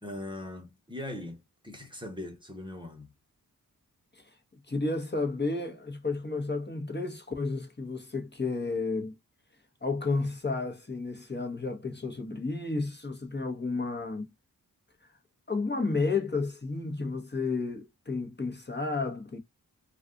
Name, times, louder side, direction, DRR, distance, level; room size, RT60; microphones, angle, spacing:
voice 1, 0.0-3.1, left 1 dB, 15° right, 1.0 m, -40 dB
voice 2, 4.7-9.2 9.8-14.3 15.0-15.1 15.5-19.4, left 3 dB, 30° left, 1.0 m, -32 dB
2.4 x 2.4 x 3.7 m
cardioid pair, 55°, 36 cm